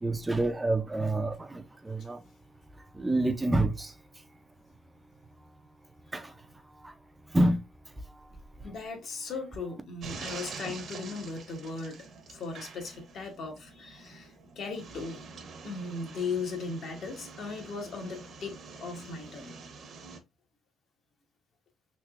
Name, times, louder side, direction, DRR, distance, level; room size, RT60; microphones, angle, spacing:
voice 1, 0.0-2.2 2.9-3.9 6.1-6.3 6.8-6.9 7.3-7.6, right 1 dB, 15° right, 0.3 m, -27 dB
voice 2, 8.6-12.0 12.3-15.2 15.6-19.5, left 4 dB, 55° left, 1.0 m, -37 dB
sound 1, 10.0-20.2, right 4 dB, 50° right, 0.7 m, -46 dB
3.3 x 2.8 x 2.4 m
cardioid pair, 125°, 0 cm